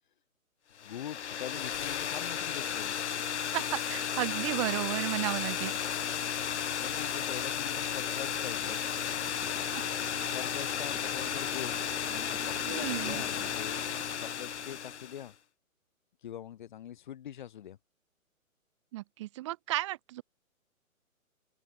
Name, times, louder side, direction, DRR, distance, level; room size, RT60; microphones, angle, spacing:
sound 1, 0.8-15.3, left 8 dB, 55° left, 0.7 m, -34 dB
voice 1, 0.8-3.0 6.8-8.8 10.2-11.8 12.1-13.8 14.2-15.3 16.2-17.8, left 10 dB, 35° left, 2.9 m, -43 dB
voice 2, 3.5-5.8 9.7-9.8 12.7-13.2 18.9-20.2, right 17 dB, 20° right, 2.3 m, -33 dB
sound 2, 4.9-15.2, right 5 dB, 5° right, 4.1 m, -51 dB
open air
hypercardioid pair, 170°, 42 cm